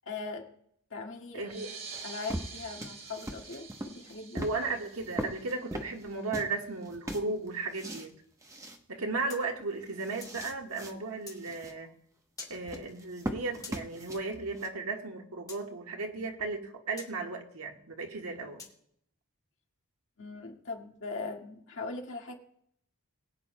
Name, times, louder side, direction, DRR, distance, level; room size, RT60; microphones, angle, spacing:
voice 1, 0.0-0.4 0.9-1.5 2.0-4.4 20.2-22.3, left 3 dB, 60° left, 1.8 m, -40 dB
voice 2, 1.3-1.7 4.3-8.1 8.9-11.9 12.5-18.6, right 3 dB, 85° right, 1.5 m, -35 dB
sound 1, 1.4-6.5, right 5 dB, 45° right, 2.1 m, -47 dB
sound 2, 1.5-6.6 6.8-8.1 8.4-8.8 9.2-9.3 9.6-10.9 11.3-11.7 12.5-14.7, right 1 dB, 15° right, 0.9 m, -40 dB
sound 3, 9.3-10.4 11.3-11.4 12.4-12.6 13.6-13.8 15.5-15.6 17.0-17.1 18.6-18.8, left 4 dB, 15° left, 1.9 m, -46 dB
22.0 x 8.8 x 2.2 m
head